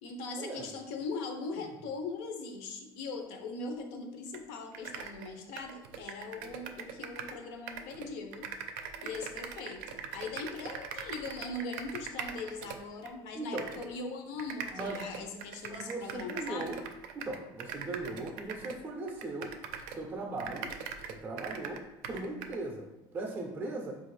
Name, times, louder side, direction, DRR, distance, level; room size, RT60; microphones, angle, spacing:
voice 1, 0.0-8.5 9.0-16.8, left 3 dB, 75° left, 5 dB, 0.6 m, -40 dB
sound 1, 4.3-4.4 4.7-7.4 7.7-13.1 13.6-13.9 14.4-20.1 20.4-22.6, right 7 dB, 85° right, 0.4 m, -42 dB
voice 2, 13.3-13.7 14.7-15.1 15.7-16.8 17.1-19.5 19.9-20.7 21.2-22.9 23.1-23.9, right 2 dB, 15° right, 0 dB, 0.5 m, -38 dB
5.1 x 2.4 x 3.1 m, 1.0 s
cardioid pair, 175°, 11 cm